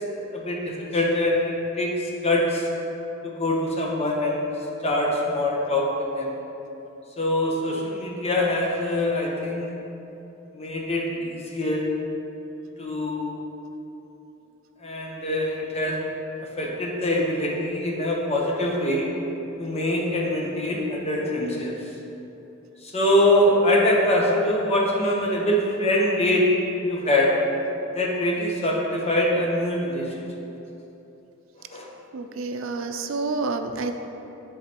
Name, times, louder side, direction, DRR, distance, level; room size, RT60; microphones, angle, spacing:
voice 1, 0.1-2.0 2.2-2.7 3.2-4.5 4.8-6.3 7.2-9.7 10.5-11.9 12.8-13.4 14.8-16.0 16.6-19.1 19.6-21.7 22.8-26.5 26.8-27.3 27.9-30.3 31.7-31.9, left 1 dB, 30° left, -2 dB, 0.9 m, -24 dB
voice 2, 32.1-33.9, right 3 dB, 70° right, 7 dB, 0.4 m, -28 dB
10.5 x 3.9 x 2.9 m, 3.0 s
head